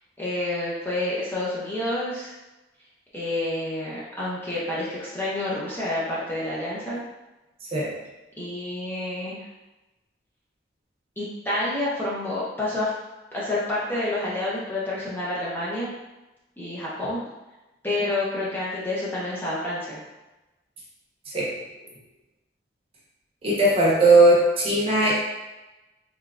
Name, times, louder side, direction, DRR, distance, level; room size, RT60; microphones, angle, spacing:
voice 1, 0.2-2.3 3.1-7.0 8.4-9.5 11.2-12.9 13.3-16.0 16.6-17.2 17.8-20.0, left 1 dB, 10° left, -8 dB, 0.6 m, -28 dB
voice 2, 23.4-25.1, right 2 dB, 30° right, -5 dB, 0.8 m, -18 dB
3.6 x 3.2 x 2.3 m, 1.0 s
head